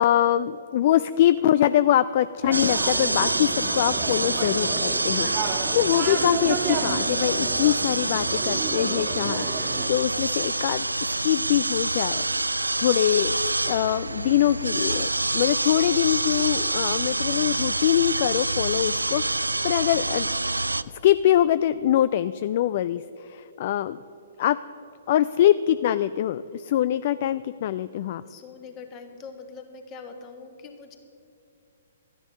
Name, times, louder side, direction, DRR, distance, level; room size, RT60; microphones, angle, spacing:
voice 1, 0.0-5.3 5.7-12.5 12.8-13.4 13.7-20.3 21.0-24.0 24.4-24.6 25.1-28.2, left 12 dB, 45° left, 14 dB, 0.3 m, -23 dB
sound 1, 2.4-9.9, right 5 dB, 35° right, 1.4 m, -31 dB
sound 2, 2.5-20.8, right 2 dB, 85° right, 0.3 m, -27 dB
voice 2, 5.1-5.6 28.2-31.0, left 5 dB, 30° left, 5 dB, 1.6 m, -43 dB
13.5 x 9.9 x 6.4 m, 2.7 s
figure-of-eight pair, 120°, 0 cm